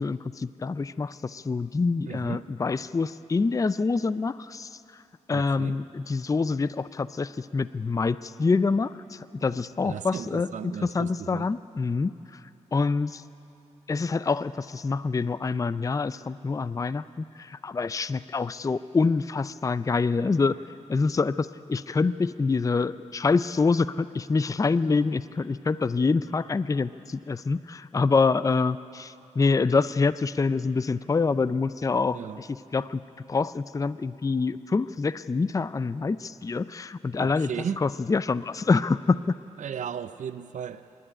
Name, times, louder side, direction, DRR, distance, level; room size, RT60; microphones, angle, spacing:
voice 1, 0.0-4.8 5.3-12.4 12.7-13.2 13.9-20.6 20.9-32.5 32.7-33.0 33.3-37.5 37.8-39.3, left 4 dB, 25° left, 0.4 m, -26 dB
voice 2, 2.1-2.5 5.3-5.8 9.8-11.5 32.1-32.4 37.2-37.8 39.6-40.9, right 8 dB, 70° right, 0.5 m, -35 dB
25.5 x 11.0 x 9.9 m
cardioid pair, 80°, 13 cm